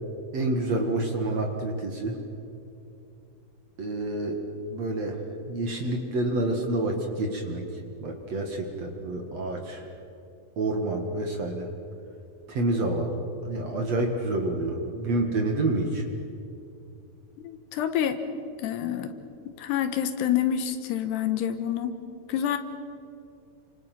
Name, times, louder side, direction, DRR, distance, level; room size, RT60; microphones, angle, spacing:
voice 1, 0.3-2.1 3.8-4.4 4.7-5.2 5.5-7.7 8.0-9.8 10.6-11.7 12.5-13.1 13.4-16.1, right 2 dB, 50° right, 3 dB, 2.4 m, -28 dB
voice 2, 17.4-18.2 18.6-19.1 19.6-22.0 22.3-22.6, left 10 dB, 75° left, 9 dB, 3.4 m, -27 dB
30.0 x 26.5 x 6.1 m, 2.7 s
omnidirectional pair, 4.9 m